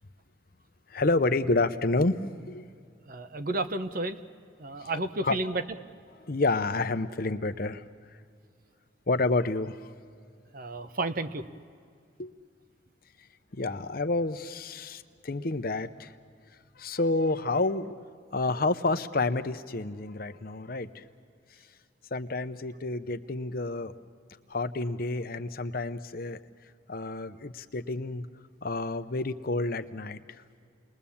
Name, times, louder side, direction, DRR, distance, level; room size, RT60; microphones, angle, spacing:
voice 1, 0.9-2.2 2.5-2.6 5.2-5.4 6.2-7.8 9.1-9.8 12.2-12.3 13.5-16.1 16.8-18.0 18.3-21.0 22.1-23.9 24.5-26.4 26.9-28.3 28.6-30.2, left 2 dB, 50° left, 10 dB, 0.8 m, -29 dB
voice 2, 3.1-4.2 4.6-5.6 10.5-11.4, right 2 dB, 50° right, 9 dB, 1.0 m, -31 dB
29.5 x 21.5 x 7.2 m, 2.3 s
head